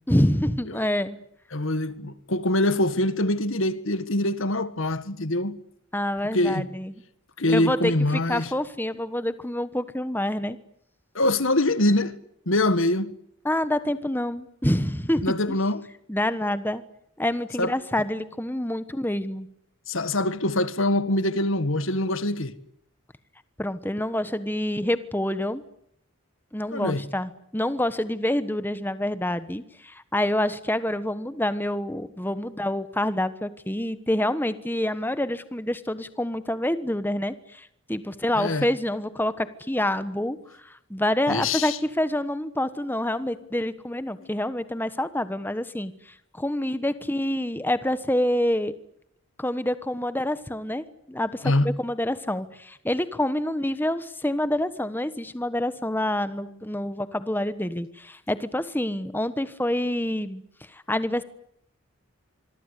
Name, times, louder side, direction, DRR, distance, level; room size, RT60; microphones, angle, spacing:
voice 1, 0.1-1.2 5.9-6.9 7.5-10.6 13.4-15.6 16.1-16.8 17.2-19.5 23.6-25.6 26.5-48.7 49.4-60.4 60.7-61.2, left 1 dB, 10° left, 1.2 m, -27 dB
voice 2, 1.5-5.6 6.2-6.7 7.4-8.5 11.2-12.2 12.5-13.1 15.2-15.9 17.6-17.7 19.9-22.5 26.7-27.0 38.4-38.7 41.3-41.8 44.2-44.3 51.4-51.7, left 1 dB, 65° left, 1.8 m, -24 dB
26.0 x 24.5 x 8.4 m
head